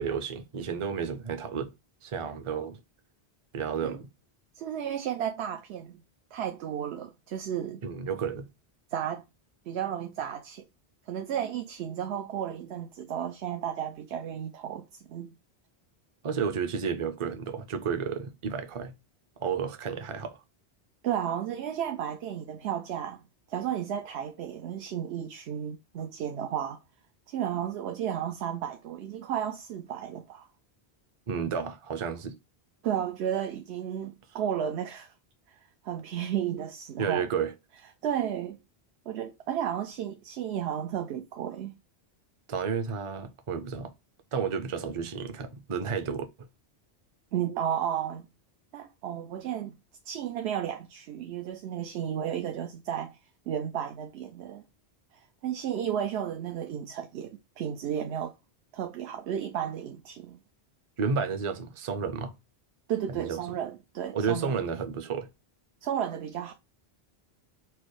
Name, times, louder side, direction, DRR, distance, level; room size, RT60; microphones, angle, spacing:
voice 1, 0.0-1.7 2.0-2.8 3.5-4.1 7.8-8.5 16.2-18.9 19.4-20.4 31.3-32.4 37.0-37.5 42.5-43.9 44.3-46.3 61.0-62.3 63.1-63.4 64.1-65.3, right 6 dB, 40° right, 0.5 m, -31 dB
voice 2, 4.5-6.0 6.3-7.8 8.9-9.3 9.7-10.6 11.1-15.3 21.0-23.2 23.5-26.8 27.3-30.5 32.8-35.1 35.8-37.3 38.0-38.6 39.1-41.7 47.3-48.3 48.7-49.7 50.0-53.2 53.5-54.7 55.1-58.3 58.7-60.4 62.9-64.6 65.8-66.5, right 9 dB, 85° right, 0.8 m, -33 dB
4.5 x 2.1 x 4.6 m
omnidirectional pair, 1.1 m